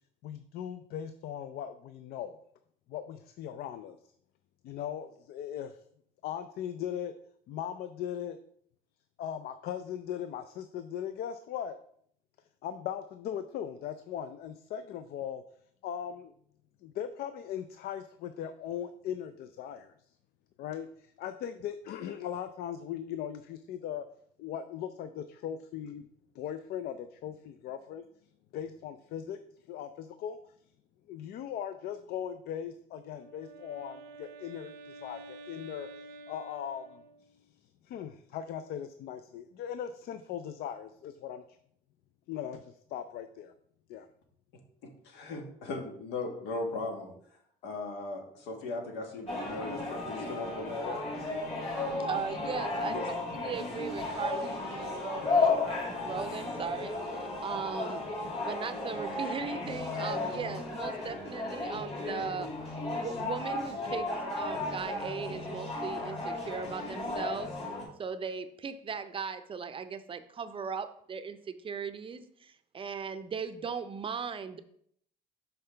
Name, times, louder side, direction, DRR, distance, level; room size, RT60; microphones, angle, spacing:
voice 1, 0.2-2.4 2.9-4.0 4.6-5.8 6.2-7.1 7.5-8.4 9.2-11.8 12.6-15.4 15.8-16.3 16.8-19.9 20.6-24.0 24.4-26.1 26.3-28.0 28.5-29.4 29.7-30.4 31.1-35.9 36.3-37.0 37.8-41.4 42.3-43.5 43.9-44.1, left 9 dB, 70° left, 10 dB, 0.4 m, -39 dB
Wind instrument woodwind instrument, 32.9-37.5, right 3 dB, 75° right, 0.6 m, -49 dB
voice 2, 45.0-47.1 47.6-51.0 51.8-51.9 52.9-53.0, left 3 dB, 90° left, 2 dB, 1.3 m, -38 dB
sound 1, 49.3-67.9, left 3 dB, 40° left, 2.7 m, -34 dB
voice 3, 52.0-58.0 58.3-62.5 62.9-64.1 64.3-67.5 68.0-74.6, right 6 dB, 30° right, 10 dB, 0.5 m, -38 dB
5.6 x 5.5 x 3.3 m, 0.66 s
cardioid pair, 110°, 17 cm